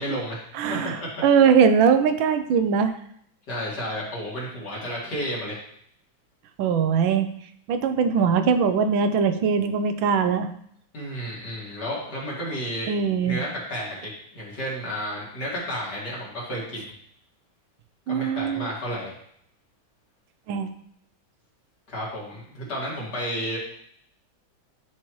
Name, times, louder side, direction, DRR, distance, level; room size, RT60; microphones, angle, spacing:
voice 1, 0.0-1.2 3.5-5.6 10.9-12.9 13.2-16.9 18.1-19.1 21.9-23.6, equal, 55° left, -5 dB, 2.9 m, -32 dB
voice 2, 0.6-3.0 6.6-7.3 7.7-10.5 12.9-13.4 18.1-18.7 20.5-20.7, right 6 dB, 80° right, 9 dB, 1.4 m, -21 dB
10.5 x 4.4 x 3.1 m, 0.67 s
omnidirectional pair, 2.1 m